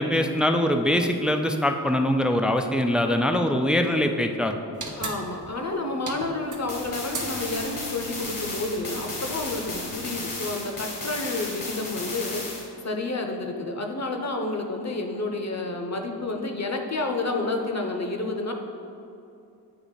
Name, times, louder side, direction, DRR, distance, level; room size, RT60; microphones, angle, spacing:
voice 1, 0.0-4.6, left 1 dB, ahead, 5 dB, 0.3 m, -23 dB
sound 1, 4.7-10.3, right 4 dB, 45° right, 0.8 m, -40 dB
voice 2, 5.0-12.4 12.8-18.5, left 2 dB, 40° left, 3 dB, 0.8 m, -30 dB
sound 2, 6.7-12.7, left 2 dB, 70° left, 1.4 m, -34 dB
8.9 x 3.0 x 4.0 m, 2.7 s
cardioid pair, 50°, 42 cm